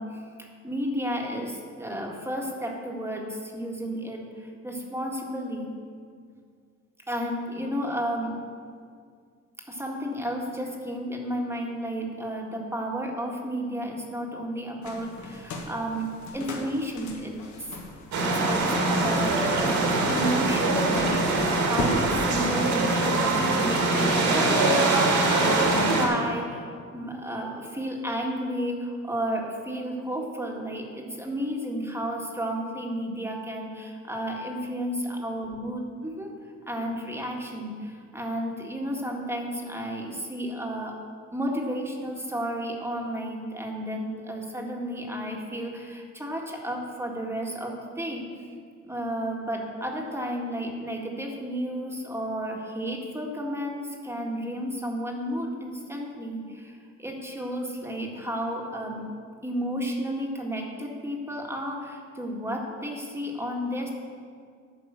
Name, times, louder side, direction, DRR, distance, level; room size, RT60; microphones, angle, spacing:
voice 1, 0.0-5.7 7.1-8.4 9.7-17.4 18.2-21.2 21.6-36.3 36.7-41.0 41.3-48.5 48.8-59.1 59.4-63.9, equal, 10° right, 0 dB, 1.8 m, -32 dB
sound 1, 14.8-22.0, left 2 dB, 70° left, 1.7 m, -38 dB
sound 2, 18.1-26.1, right 2 dB, 70° right, 2.3 m, -23 dB
11.0 x 5.4 x 7.5 m, 2.1 s
cardioid pair, 90°, 30 cm